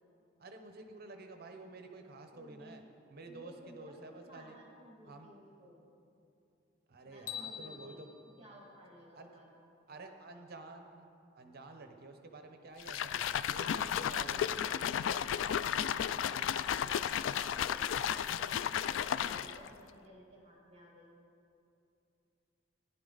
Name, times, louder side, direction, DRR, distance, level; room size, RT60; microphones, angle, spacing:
voice 1, 0.4-2.8 3.1-4.6 5.1-5.3 6.9-8.1 9.1-9.3 9.9-11.1 11.3-14.7, right 2 dB, 55° right, 5 dB, 0.9 m, -50 dB
voice 2, 2.3-2.9 3.2-5.8 7.1-8.0 8.4-9.6 13.5-14.7 15.0-18.4 18.7-21.1, equal, 35° right, -3 dB, 2.0 m, -56 dB
sound 1, 7.3-9.5, left 8 dB, 40° left, 0.9 m, -47 dB
sound 2, 12.8-19.7, left 9 dB, 70° left, 0.3 m, -33 dB
16.0 x 10.5 x 4.0 m, 2.7 s
head